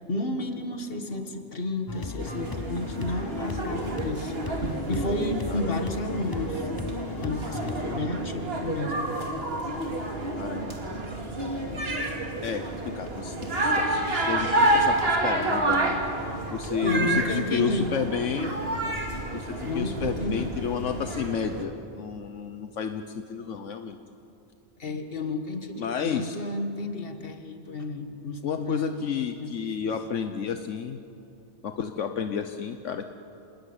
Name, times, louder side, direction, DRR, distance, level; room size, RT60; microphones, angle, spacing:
voice 1, 0.1-6.7 7.2-9.1 16.8-17.9 19.7-20.5 20.9-21.0 24.8-29.5, left 2 dB, 50° left, 6 dB, 2.0 m, -32 dB
sound 1, 1.9-8.1, left 4 dB, 25° left, 0.6 m, -37 dB
sound 2, 2.2-21.6, right 2 dB, 55° right, 2.8 m, -29 dB
voice 2, 10.4-11.0 11.4-11.8 12.4-16.0 16.5-18.5 19.3-24.0 25.8-26.4 28.4-31.0 31.6-33.1, left 7 dB, 75° left, 7 dB, 1.3 m, -31 dB
27.5 x 19.0 x 9.8 m, 2.8 s
omnidirectional pair, 1.3 m